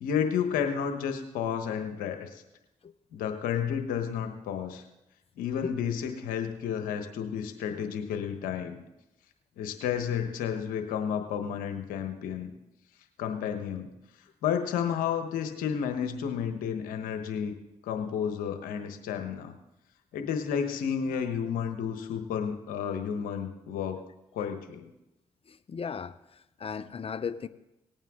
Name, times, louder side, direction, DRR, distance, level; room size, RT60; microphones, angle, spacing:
voice 1, 0.0-2.4 3.1-4.8 5.4-8.8 9.6-12.5 13.2-13.9 14.4-17.5 17.8-19.5 20.1-24.0 24.3-24.9, left 8 dB, 85° left, 6 dB, 1.2 m, -31 dB
voice 2, 25.5-27.5, left 6 dB, 45° left, 14 dB, 0.7 m, -36 dB
18.5 x 8.9 x 3.7 m, 0.92 s
supercardioid pair, 45°, 14 cm